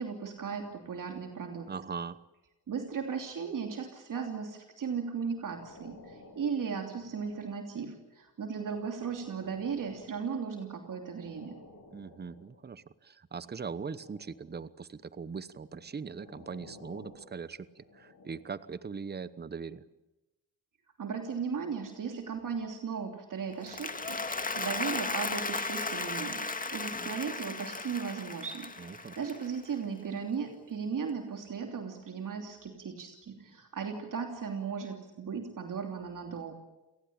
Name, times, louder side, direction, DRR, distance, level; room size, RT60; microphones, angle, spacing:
voice 1, 0.0-1.7 2.7-11.6 21.0-36.5, right 6 dB, 50° right, 3 dB, 3.1 m, -36 dB
voice 2, 1.7-2.2 11.9-19.8 28.8-29.2, right 5 dB, 25° right, 15 dB, 1.0 m, -41 dB
sound 1, 4.8-7.9 8.5-12.7 13.4-14.6 15.4-18.8 19.4-19.6, left 3 dB, 50° left, 7.3 m, -55 dB
Applause, 23.5-29.8, left 3 dB, 20° left, 2.0 m, -36 dB
29.0 x 19.0 x 8.8 m, 1.0 s
cardioid pair, 105°, 40 cm